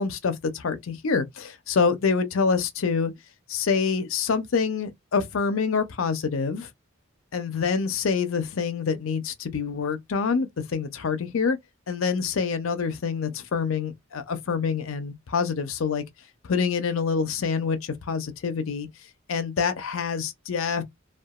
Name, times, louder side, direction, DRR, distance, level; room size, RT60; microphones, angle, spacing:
voice 1, 0.0-3.1 3.5-6.7 7.3-11.6 11.9-16.0 16.4-18.9 19.3-20.8, left 5 dB, 75° left, 0.5 m, -26 dB
2.7 x 2.3 x 2.3 m
head